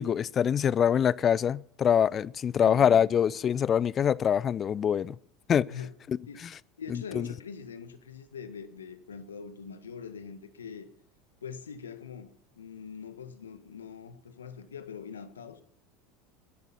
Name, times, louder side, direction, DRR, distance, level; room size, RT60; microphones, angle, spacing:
voice 1, 0.0-5.2 5.5-5.7 6.1-6.2 6.9-7.3, left 8 dB, 35° left, 0.5 m, -24 dB
voice 2, 2.6-3.1 5.7-5.9 6.3-6.4 6.8-10.9 11.4-15.6, left 6 dB, 90° left, 1.6 m, -43 dB
21.5 x 11.0 x 5.7 m
hypercardioid pair, 85°, 0 cm